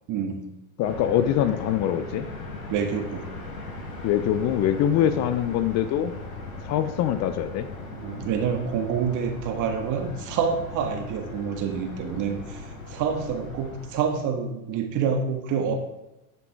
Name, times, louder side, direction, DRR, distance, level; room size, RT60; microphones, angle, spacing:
voice 1, 0.1-0.4 2.7-3.3 5.0-5.2 7.9-15.7, right 6 dB, 45° right, 4 dB, 1.7 m, -27 dB
sound 1, 0.8-14.2, left 2 dB, 75° left, 3.7 m, -38 dB
voice 2, 0.8-2.3 4.0-6.1 6.7-7.7, left 10 dB, 40° left, 11 dB, 0.6 m, -23 dB
9.8 x 7.4 x 3.5 m, 0.91 s
hypercardioid pair, 100°, 42 cm